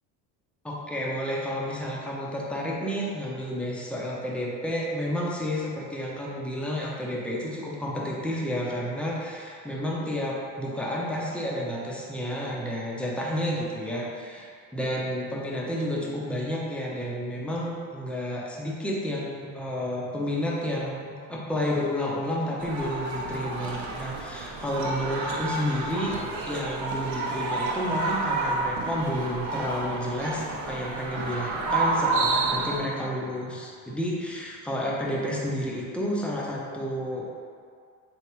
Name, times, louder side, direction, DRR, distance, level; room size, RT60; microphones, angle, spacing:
voice 1, 0.6-26.2 26.4-37.4, equal, ahead, -3 dB, 0.5 m, -31 dB
sound 1, 22.6-32.8, right 3 dB, 55° right, 0.7 m, -29 dB
3.7 x 3.4 x 3.0 m, 2.2 s
supercardioid pair, 85°, 49 cm